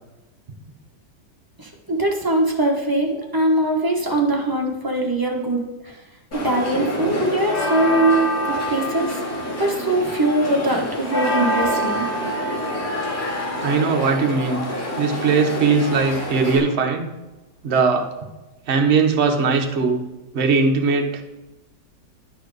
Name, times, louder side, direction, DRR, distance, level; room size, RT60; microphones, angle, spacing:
voice 1, 1.6-6.0 6.3-9.2 9.6-12.1, right 2 dB, 15° right, 0 dB, 1.0 m, -22 dB
sound 1, 6.3-16.6, equal, 55° left, 2.7 m, -26 dB
voice 2, 13.6-14.6 15.0-17.1 17.6-18.1 18.7-20.0 20.3-21.2, right 4 dB, 45° right, 3 dB, 1.0 m, -19 dB
11.5 x 4.5 x 4.8 m, 1.1 s
omnidirectional pair, 1.8 m